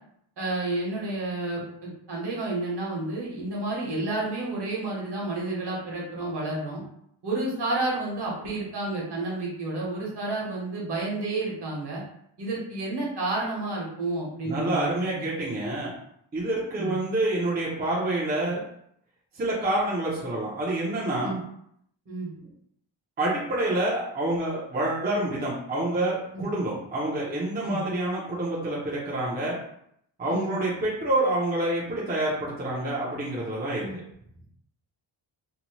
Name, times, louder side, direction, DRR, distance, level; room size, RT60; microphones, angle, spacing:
voice 1, 0.4-6.8 7.2-12.0 12.4-15.3 16.7-17.0 21.2-21.4 22.1-22.3 26.3-26.5 27.6-27.8 30.3-30.6 33.8-34.0, right 2 dB, 55° right, -4 dB, 1.0 m, -30 dB
voice 2, 14.4-15.9 16.3-18.6 19.3-21.4 23.2-29.6 30.2-33.9, right 1 dB, 20° right, -6 dB, 0.5 m, -27 dB
2.7 x 2.1 x 2.9 m, 0.71 s
wide cardioid pair, 175°, 48 cm